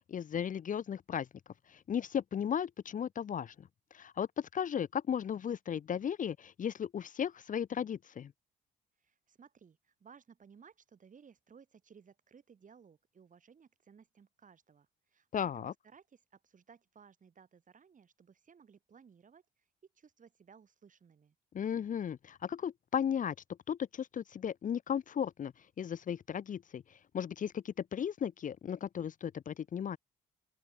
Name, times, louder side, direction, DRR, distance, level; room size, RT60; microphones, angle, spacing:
voice 1, 0.1-1.3 1.7-3.7 3.9-8.3 15.3-15.7 21.5-23.3 23.7-26.8 27.1-30.0, left 8 dB, 50° left, 0.9 m, -35 dB
voice 2, 9.0-19.4 19.9-21.3, right 6 dB, 45° right, 7.9 m, -60 dB
open air
supercardioid pair, 60°, 18 cm